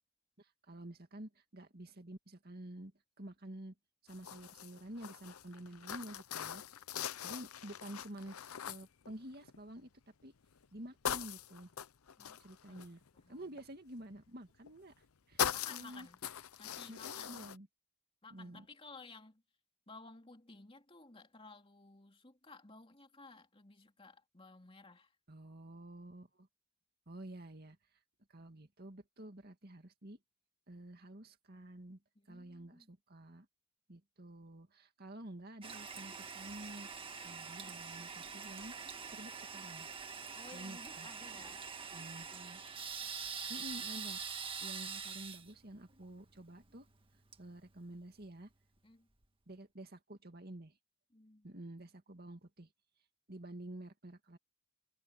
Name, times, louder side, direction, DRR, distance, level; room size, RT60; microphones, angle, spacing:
voice 1, 0.4-2.9 3.2-3.7 4.0-6.6 7.2-10.3 10.7-11.7 12.4-13.0 13.3-14.9 15.3-16.1 16.9-17.7 18.3-18.7 25.3-26.5 27.1-27.8 28.3-30.2 30.7-32.0 32.3-33.5 33.9-38.7 39.1-39.9 40.5-41.1 41.9-42.6 43.5-44.2 44.6-46.9 47.4-48.5 49.5-50.8 51.4-52.7 53.3-54.4, right 1 dB, 45° right, 2.3 m, -50 dB
sound 1, 4.1-9.7 10.2-10.7 11.0-13.6 14.7-15.1 15.4-17.6, left 9 dB, 90° left, 0.7 m, -41 dB
voice 2, 12.7-13.6 15.5-16.2 16.6-17.5 18.2-19.4 19.9-25.2 32.1-32.9 40.3-41.6 48.8-49.1 51.1-51.5, left 3 dB, 25° left, 2.9 m, -56 dB
Toilet flush, 35.6-48.3, right 6 dB, 25° right, 1.8 m, -45 dB
head